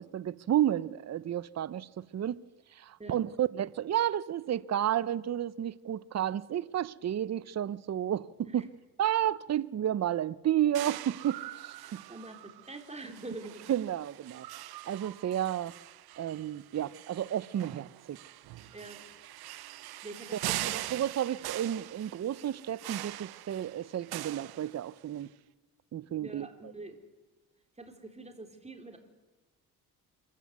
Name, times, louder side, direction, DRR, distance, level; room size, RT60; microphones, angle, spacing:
voice 1, 0.0-2.4 2.7-8.3 8.5-8.6 9.0-12.0 13.7-14.5 14.9-15.7 16.2-18.2 20.3-25.3 25.9-26.5, right 11 dB, 45° right, 0.7 m, -31 dB
sound 1, 10.7-25.2, right 16 dB, 80° right, 0.7 m, -42 dB
voice 2, 12.1-13.6 18.7-19.1 20.0-20.8 26.2-27.0 27.8-29.0, right 2 dB, 15° right, 3.7 m, -45 dB
25.0 x 15.0 x 9.5 m
cardioid pair, 85°, 37 cm